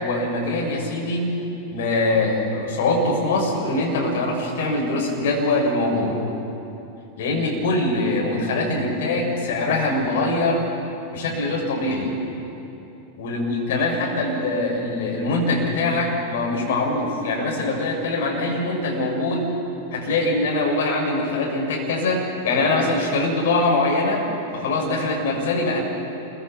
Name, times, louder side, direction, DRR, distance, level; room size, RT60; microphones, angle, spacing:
voice 1, 0.0-1.4 1.7-6.2 7.2-10.6 11.1-12.1 13.2-19.5 19.9-24.3 24.5-25.8, left 2 dB, 55° left, -1 dB, 6.5 m, -23 dB
28.5 x 23.5 x 6.0 m, 3.0 s
figure-of-eight pair, 90°, 0 cm